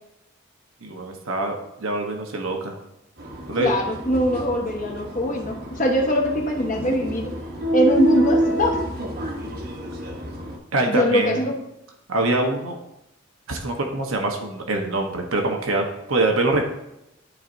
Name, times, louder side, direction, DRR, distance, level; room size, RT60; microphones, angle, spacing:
voice 1, 0.8-2.8 3.5-3.7 10.7-11.4 12.1-12.8 13.5-16.6, right 2 dB, 80° right, 2 dB, 1.0 m, -24 dB
sound 1, 3.2-10.6, right 1 dB, 45° right, 1.0 m, -28 dB
voice 2, 3.6-7.3 7.7-8.8 10.9-11.6, equal, 40° left, 1 dB, 1.1 m, -22 dB
12.0 x 4.2 x 2.6 m, 0.86 s
head